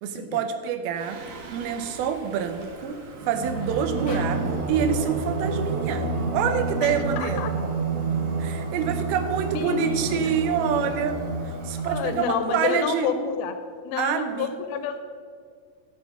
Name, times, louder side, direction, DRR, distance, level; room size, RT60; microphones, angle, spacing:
voice 1, 0.0-1.2 1.5-7.4 8.4-11.2 11.4-13.1 14.0-14.5, right 7 dB, 85° right, 8 dB, 2.7 m, -27 dB
Singing, 1.0-12.3, right 3 dB, 65° right, 1.7 m, -30 dB
sound 1, 4.1-7.3, left 2 dB, 55° left, 2.1 m, -44 dB
voice 2, 6.8-7.5 9.5-10.3 11.8-13.6 13.8-15.0, left 8 dB, 85° left, 7 dB, 2.6 m, -29 dB
12.0 x 6.3 x 5.9 m, 2.1 s
omnidirectional pair, 4.3 m